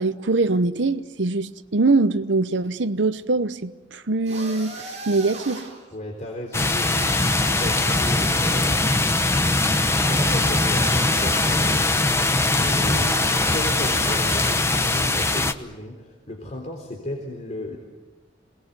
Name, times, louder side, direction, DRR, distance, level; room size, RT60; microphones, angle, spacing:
voice 1, 0.0-5.7, right 3 dB, 80° right, 0.9 m, -23 dB
sound 1, 4.3-5.8 6.9-8.7 9.9-11.7 12.9-14.7, right 2 dB, 40° right, 7.5 m, -37 dB
voice 2, 5.9-9.2 10.1-13.2 13.5-17.8, left 1 dB, 40° left, 3.8 m, -35 dB
sound 2, 6.5-15.5, left 2 dB, 15° left, 1.0 m, -21 dB
27.5 x 20.0 x 8.2 m
head